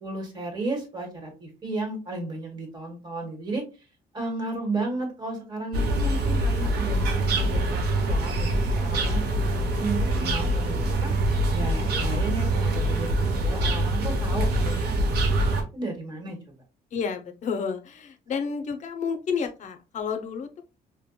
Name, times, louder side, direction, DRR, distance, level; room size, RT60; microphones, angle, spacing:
voice 1, 0.0-3.6 4.1-9.2 9.6-11.1 11.5-14.9 15.2-15.4 15.7-16.5, right 2 dB, 25° right, 2 dB, 1.2 m, -34 dB
sound 1, 5.7-15.6, right 1 dB, 90° right, 0.9 m, -24 dB
voice 2, 16.9-20.6, left 6 dB, 50° left, 7 dB, 0.6 m, -30 dB
5.2 x 2.1 x 2.2 m, 0.30 s
cardioid pair, 155°, 16 cm